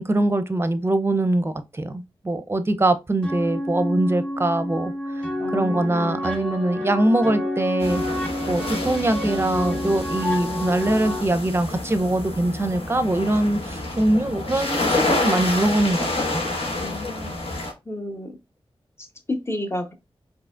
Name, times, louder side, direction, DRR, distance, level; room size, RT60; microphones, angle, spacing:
voice 1, 0.0-4.9 5.5-8.0 8.5-16.4, right 1 dB, 25° right, 0.6 m, -22 dB
sound 1, 3.2-11.2, left 1 dB, 10° left, 2.1 m, -29 dB
voice 2, 5.4-6.2 16.8-17.3 17.9-18.3 19.0-19.9, left 1 dB, 25° left, 1.0 m, -31 dB
sound 2, 7.8-17.7, left 2 dB, 70° left, 1.3 m, -28 dB
4.7 x 2.9 x 2.4 m
wide cardioid pair, 60°, 10 cm